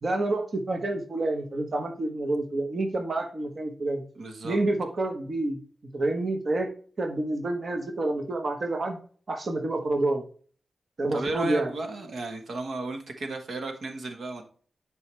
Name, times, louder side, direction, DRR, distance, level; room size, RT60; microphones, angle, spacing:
voice 1, 0.0-4.0 4.4-5.6 5.9-6.7 7.0-9.0 9.3-10.2 11.0-11.7, right 2 dB, 45° right, 4 dB, 1.2 m, -28 dB
voice 2, 4.2-4.6 11.1-14.4, right 2 dB, 70° right, 5 dB, 1.4 m, -34 dB
10.5 x 4.8 x 3.3 m, 0.44 s
wide cardioid pair, 140°, 0 cm